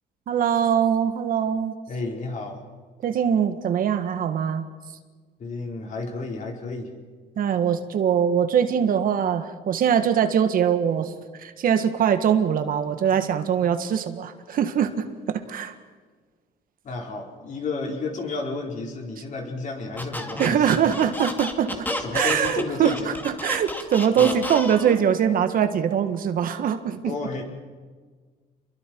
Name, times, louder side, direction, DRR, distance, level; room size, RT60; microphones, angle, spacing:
voice 1, 0.3-1.7 3.0-4.6 7.4-15.7 20.4-21.9 22.1-27.0, right 8 dB, 55° right, 8 dB, 1.6 m, -22 dB
voice 2, 1.9-2.6 5.4-6.9 16.8-20.8 21.7-23.2 24.1-24.4 27.0-27.4, left 3 dB, 45° left, 1 dB, 4.7 m, -32 dB
Squeak, 20.0-25.0, left 1 dB, 10° left, 2.4 m, -31 dB
28.5 x 22.5 x 4.6 m, 1.5 s
cardioid pair, 110°, 17 cm